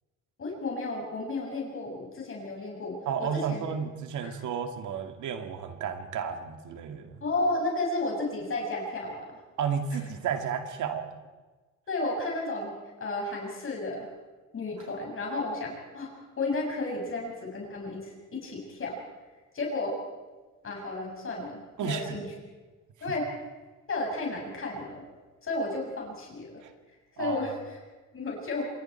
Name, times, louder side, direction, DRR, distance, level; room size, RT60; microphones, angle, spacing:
voice 1, 0.4-3.6 4.2-4.3 7.2-9.2 9.9-10.0 11.9-12.7 13.0-14.1 14.5-16.1 16.4-19.0 19.5-20.0 20.6-22.3 23.0-23.3 23.9-25.0 25.4-26.6 27.1-27.8 28.1-28.6, left 2 dB, 45° left, -1 dB, 6.5 m, -33 dB
voice 2, 3.1-7.1 9.6-11.2 21.8-22.2 26.6-26.7 27.2-27.4, right 7 dB, 75° right, 6 dB, 2.4 m, -32 dB
26.5 x 22.0 x 4.5 m, 1.3 s
cardioid pair, 90°, 30 cm